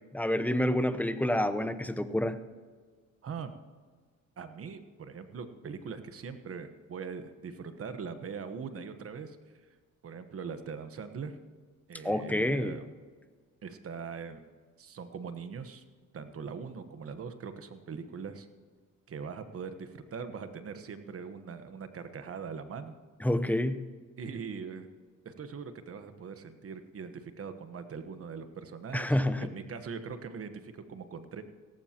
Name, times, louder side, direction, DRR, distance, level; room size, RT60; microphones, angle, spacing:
voice 1, 0.1-2.4 12.0-12.8 23.2-23.9 28.9-29.5, left 1 dB, 5° left, 11 dB, 0.7 m, -28 dB
voice 2, 3.2-3.5 4.4-9.4 10.0-11.4 11.9-12.9 13.6-14.4 14.8-15.8 16.1-18.5 19.1-22.9 24.2-24.9 25.2-31.4, right 6 dB, 50° right, 10 dB, 1.2 m, -41 dB
17.0 x 15.0 x 2.9 m, 1.5 s
cardioid pair, 90°, 30 cm